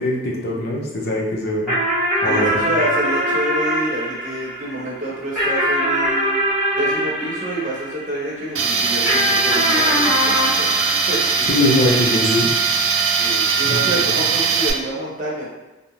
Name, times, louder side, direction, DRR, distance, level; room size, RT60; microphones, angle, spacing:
voice 1, 0.0-1.8 2.2-2.5 11.5-12.5 13.6-14.0, left 1 dB, 50° left, -2 dB, 0.5 m, -21 dB
sound 1, 1.7-8.4 9.0-11.9, equal, ahead, 1.1 m, -22 dB
voice 2, 2.2-6.4 6.7-11.7 13.2-15.4, right 1 dB, 40° right, -6 dB, 0.8 m, -28 dB
Tools, 8.6-14.7, right 5 dB, 75° right, 0.4 m, -20 dB
Wind instrument woodwind instrument, 10.7-14.1, right 6 dB, 30° left, 1.2 m, -32 dB
2.5 x 2.0 x 3.0 m, 1.0 s
head